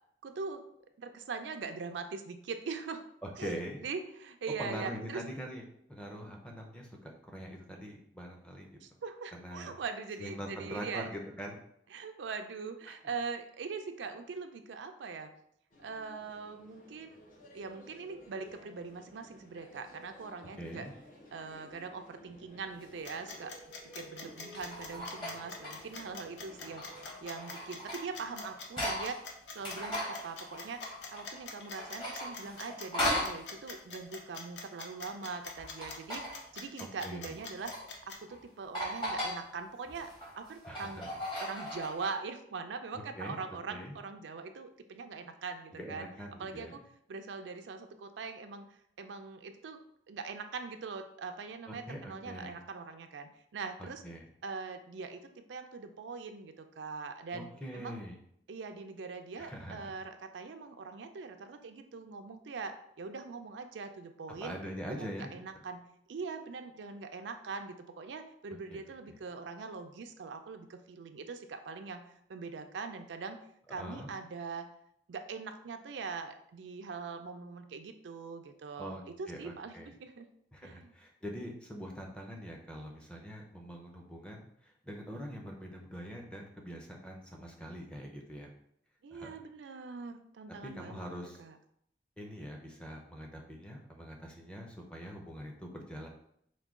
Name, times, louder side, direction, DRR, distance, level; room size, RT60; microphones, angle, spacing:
voice 1, 0.2-0.6 1.0-3.0 3.4-5.2 8.8-11.1 11.9-15.3 15.8-17.2 17.5-20.9 21.3-23.5 23.9-26.9 27.2-29.2 29.5-30.8 31.1-37.7 38.1-40.1 40.4-41.0 41.4-46.1 46.4-46.8 47.1-49.8 50.1-54.0 54.4-58.0 58.5-64.5 64.9-65.8 66.1-73.4 73.7-74.7 75.1-80.3 80.6-81.0 89.0-91.0 91.4-91.5, right 4 dB, 90° right, 7 dB, 0.4 m, -42 dB
voice 2, 3.2-3.8 4.6-5.6 5.9-8.8 9.3-9.7 10.2-11.6 20.6-20.9 37.0-37.3 40.7-41.1 42.9-43.4 43.7-44.0 45.7-46.7 51.7-52.6 53.8-54.2 57.3-58.2 59.4-59.9 64.4-65.3 68.7-68.8 73.7-74.1 78.7-79.0 79.3-79.9 80.5-88.5 89.1-89.3 90.6-91.4 92.2-96.1, equal, 5° left, 1 dB, 0.5 m, -43 dB
sound 1, 15.7-27.2, equal, 45° left, 0.8 m, -55 dB
sound 2, 22.8-23.0 24.2-26.0 26.5-29.2 29.5-31.4 31.7-33.4 35.4-36.5 37.3-37.9 38.3-38.4 38.7-39.4 39.9-42.1, equal, 25° left, 1.0 m, -38 dB
sound 3, 23.0-38.2, left 4 dB, 80° left, 0.6 m, -45 dB
4.6 x 2.2 x 3.6 m, 0.72 s
head